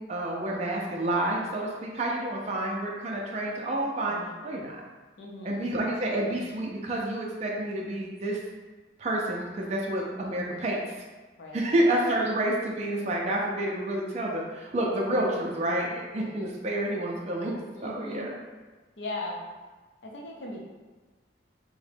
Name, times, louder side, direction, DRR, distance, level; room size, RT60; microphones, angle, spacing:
voice 1, 0.0-4.2 4.4-4.8 5.4-8.4 9.0-10.8 11.5-17.5 17.8-18.4, right 1 dB, 35° right, -2 dB, 0.4 m, -29 dB
voice 2, 5.2-5.5 11.4-11.6 17.7-18.3 19.0-19.4 20.0-20.6, left 2 dB, 75° left, -1 dB, 0.6 m, -38 dB
3.6 x 2.1 x 3.3 m, 1.3 s
head